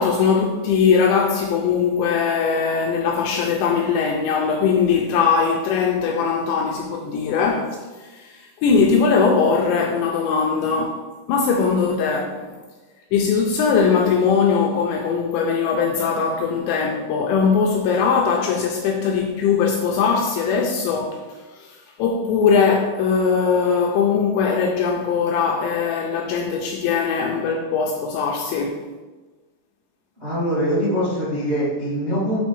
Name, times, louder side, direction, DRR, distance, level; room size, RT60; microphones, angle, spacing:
voice 1, 0.0-12.5 13.1-28.9, left 5 dB, 80° left, 2.6 m, -20 dB
voice 2, 30.2-32.4, equal, 25° right, 0.8 m, -23 dB
8.4 x 4.0 x 4.6 m
omnidirectional pair, 5.6 m